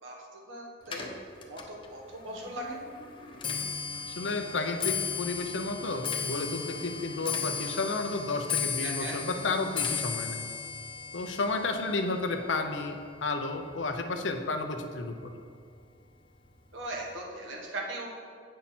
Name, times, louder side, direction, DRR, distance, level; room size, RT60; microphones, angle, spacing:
voice 1, 0.0-1.1 1.5-2.8 8.8-9.2 16.7-18.2, right 1 dB, 90° right, -1 dB, 1.4 m, -39 dB
Clock, 0.8-14.2 14.5-15.0 15.8-15.9 16.2-16.6 16.8-16.9, left 6 dB, 25° left, 0.7 m, -36 dB
voice 2, 3.9-10.4 11.1-15.3, left 3 dB, 80° left, 5 dB, 0.7 m, -32 dB
8.5 x 5.7 x 4.3 m, 2.2 s
head